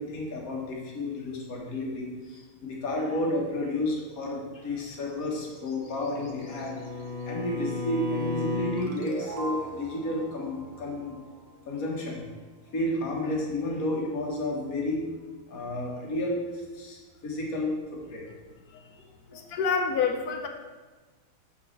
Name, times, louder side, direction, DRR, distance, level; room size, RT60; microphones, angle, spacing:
voice 1, 0.0-11.1 11.7-12.2 12.7-15.0 15.5-16.4 16.7-18.2 19.3-19.5, left 1 dB, 45° left, -1 dB, 1.6 m, -31 dB
Bowed string instrument, 5.5-8.9, left 4 dB, 80° right, 1.7 m, -34 dB
sound 1, 8.8-12.0, right 2 dB, 50° right, 1.0 m, -40 dB
voice 2, 19.3-20.5, left 5 dB, 75° left, 5 dB, 0.8 m, -27 dB
7.4 x 6.7 x 3.2 m, 1.3 s
omnidirectional pair, 2.3 m